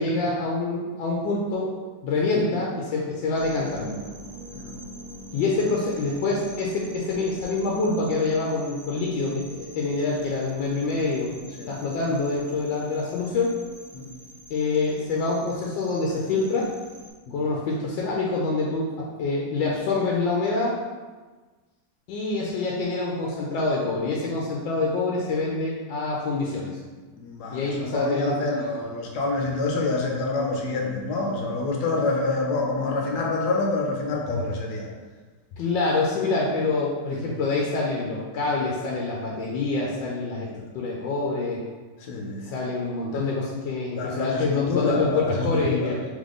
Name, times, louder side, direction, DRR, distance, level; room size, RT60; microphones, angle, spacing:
voice 1, 0.0-1.7 2.0-4.0 5.3-11.3 11.7-13.6 14.5-16.7 17.3-20.8 22.1-26.8 27.5-28.7 35.6-40.5 40.7-41.6 42.4-46.0, left 3 dB, 85° left, -3 dB, 1.3 m, -26 dB
sound 1, 3.4-17.1, right 1 dB, 90° right, 0.3 m, -44 dB
voice 2, 27.2-34.9 37.1-37.2 40.5-40.6 42.0-42.5 43.1-43.3 43.9-45.9, left 3 dB, 70° left, 0 dB, 1.2 m, -27 dB
3.6 x 3.3 x 3.7 m, 1.3 s
omnidirectional pair, 2.0 m